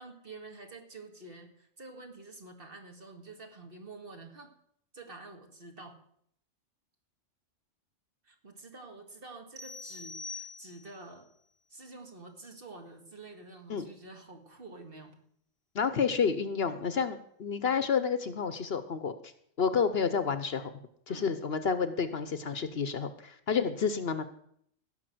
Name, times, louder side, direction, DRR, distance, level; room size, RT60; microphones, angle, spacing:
voice 1, 0.0-4.5 4.9-6.0 8.2-11.3 11.7-15.2 21.1-21.3, right 3 dB, 45° right, 3 dB, 2.2 m, -48 dB
sound 1, 9.6-11.1, left 3 dB, 25° right, 1.8 m, -44 dB
voice 2, 15.7-19.1 19.6-20.7 21.1-24.2, left 6 dB, 55° left, 11 dB, 1.0 m, -30 dB
16.5 x 5.9 x 7.7 m, 0.67 s
omnidirectional pair, 1.3 m